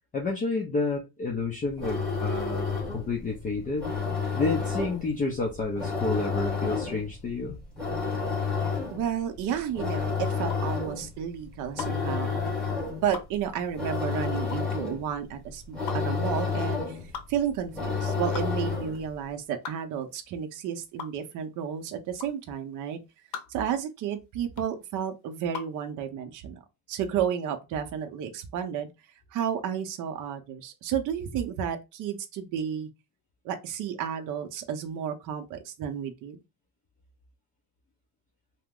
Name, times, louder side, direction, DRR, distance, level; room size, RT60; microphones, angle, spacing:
voice 1, 0.1-3.9 4.3-7.6, left 3 dB, 20° left, 0.5 m, -30 dB
sound 1, 1.6-19.1, left 5 dB, ahead, 1.2 m, -31 dB
sound 2, 8.6-25.8, left 7 dB, 70° left, 0.8 m, -43 dB
voice 2, 8.9-12.3 13.0-17.0 17.3-23.0 23.5-26.6 26.9-28.9 29.3-32.9 33.4-36.4, right 8 dB, 50° right, 0.6 m, -32 dB
2.9 x 2.1 x 3.5 m
cardioid pair, 150°, 38 cm